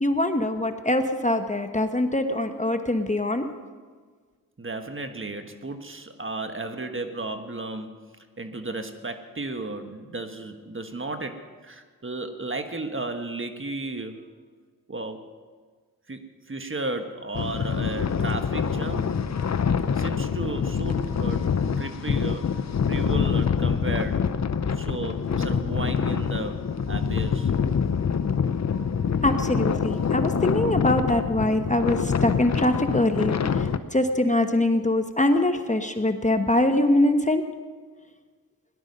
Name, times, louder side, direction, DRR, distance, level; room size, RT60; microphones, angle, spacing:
voice 1, 0.0-3.5 29.2-37.4, left 1 dB, 20° left, 7 dB, 1.0 m, -23 dB
voice 2, 4.6-8.0 8.4-14.3 14.9-15.2 16.1-19.2 19.9-21.5 21.8-24.3 24.7-27.5, right 2 dB, 35° right, 6 dB, 1.4 m, -34 dB
sound 1, 17.3-33.8, left 6 dB, 50° left, 0.7 m, -25 dB
17.5 x 11.5 x 5.4 m, 1.5 s
cardioid pair, 55°, 35 cm